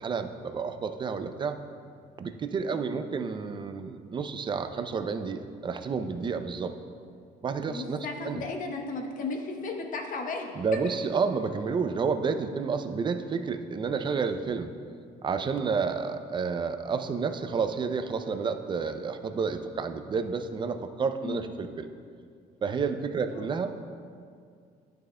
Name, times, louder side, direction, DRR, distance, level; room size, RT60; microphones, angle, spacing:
voice 1, 0.0-1.6 2.2-6.8 7.4-8.4 10.6-14.7 15.2-21.9 22.6-23.7, right 5 dB, 30° right, 8 dB, 0.4 m, -30 dB
voice 2, 7.7-10.5 21.2-21.4 23.3-23.5, left 3 dB, 50° left, 3 dB, 0.8 m, -35 dB
11.0 x 6.4 x 2.2 m, 2.2 s
cardioid pair, 110°, 17 cm